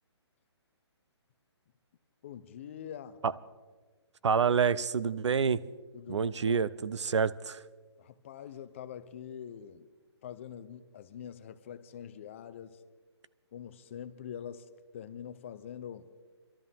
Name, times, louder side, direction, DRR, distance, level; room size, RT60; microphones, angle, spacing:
voice 1, 2.2-3.2 5.9-6.7 8.0-9.9 10.2-12.8 13.5-16.1, left 9 dB, 25° left, 0.5 m, -44 dB
voice 2, 4.2-5.6 6.1-7.6, right 6 dB, 90° right, 0.6 m, -27 dB
24.0 x 13.0 x 3.5 m
hypercardioid pair, 160°, 14 cm